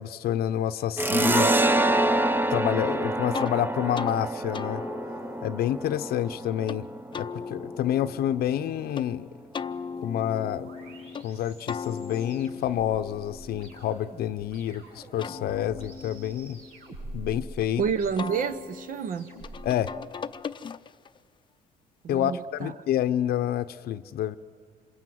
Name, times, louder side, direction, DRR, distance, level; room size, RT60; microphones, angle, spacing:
voice 1, 0.0-1.5 2.5-4.8 5.4-6.9 7.1-9.3 10.0-10.7 11.2-16.6 17.1-17.8 19.6-19.9 22.1-24.4, left 11 dB, 65° left, 0.7 m, -28 dB
sound 1, 1.0-8.2, right 1 dB, 10° right, 0.7 m, -26 dB
sound 2, 3.3-3.6 3.9-4.2 4.5-6.8 7.1-9.1 9.5-11.3 11.7-14.6 15.0-17.7 18.2-21.2, left 6 dB, 30° left, 0.6 m, -39 dB
sound 3, 10.0-19.7, right 1 dB, 75° right, 6.1 m, -46 dB
voice 2, 17.8-19.3 22.0-22.7, right 6 dB, 55° right, 0.8 m, -29 dB
27.0 x 21.5 x 9.3 m
cardioid pair, 110°, 17 cm